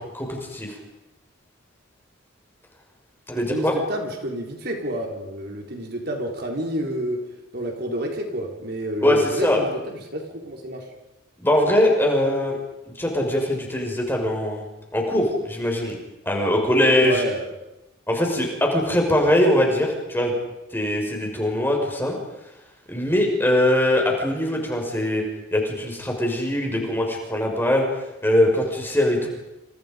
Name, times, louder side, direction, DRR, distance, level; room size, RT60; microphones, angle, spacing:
voice 1, 0.1-0.7 3.3-3.7 9.0-9.6 11.4-12.6 13.0-14.6 14.9-16.0 16.3-17.2 18.1-20.3 20.7-22.2 22.9-25.2 25.5-27.9 28.2-29.3, left 1 dB, 10° left, 1 dB, 5.8 m, -21 dB
voice 2, 3.5-7.2 7.5-10.8 16.8-17.5, right 1 dB, 50° right, 2 dB, 4.3 m, -29 dB
29.5 x 28.5 x 5.3 m, 0.94 s
head